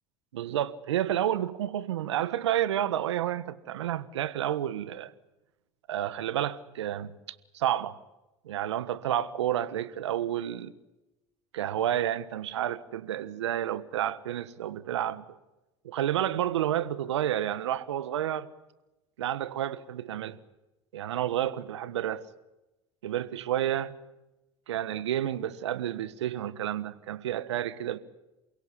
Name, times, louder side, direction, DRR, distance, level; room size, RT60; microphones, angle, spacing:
voice 1, 0.3-5.1 5.9-7.1 7.5-8.0 8.4-10.7 11.5-15.4 15.8-18.5 19.2-20.4 20.9-22.2 23.0-23.9 24.7-28.0, right 11 dB, 85° right, 1.4 m, -30 dB
28.5 x 17.0 x 9.8 m
hypercardioid pair, 75°, 14 cm